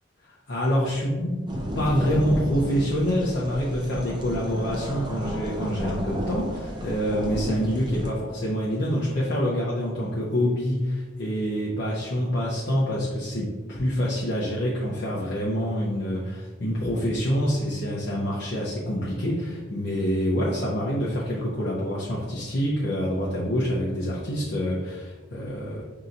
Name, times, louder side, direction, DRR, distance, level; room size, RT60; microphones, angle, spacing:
voice 1, 0.2-1.4 1.7-25.8, equal, 60° left, -6 dB, 0.6 m, -26 dB
sound 1, 1.5-8.1, equal, 25° right, 0.5 m, -33 dB
5.4 x 2.8 x 2.5 m, 1.3 s
head